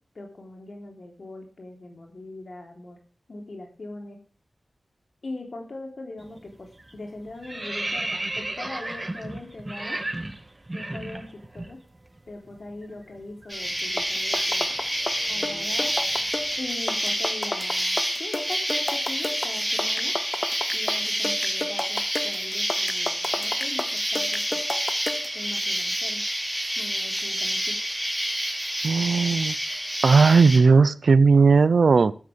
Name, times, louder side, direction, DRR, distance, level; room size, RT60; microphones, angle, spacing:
voice 1, 0.2-3.0 3.3-4.2 5.2-10.0 10.7-11.8 12.3-14.7 15.3-15.9 16.6-20.1 20.7-24.6 25.3-26.2 26.8-27.7, left 2 dB, 65° left, 2 dB, 3.5 m, -41 dB
sound 1, 6.2-6.5 6.8-11.7 12.0-12.2 12.5-16.6, right 2 dB, 30° right, 1.9 m, -35 dB
Insect, 13.5-30.6, equal, ahead, 5.5 m, -28 dB
sound 2, 13.8-25.4, left 2 dB, 35° left, 0.9 m, -33 dB
voice 2, 28.8-29.6 30.0-32.1, right 4 dB, 80° right, 18 dB, 0.7 m, -17 dB
13.5 x 12.5 x 3.5 m, 0.39 s
wide cardioid pair, 55°, 0 cm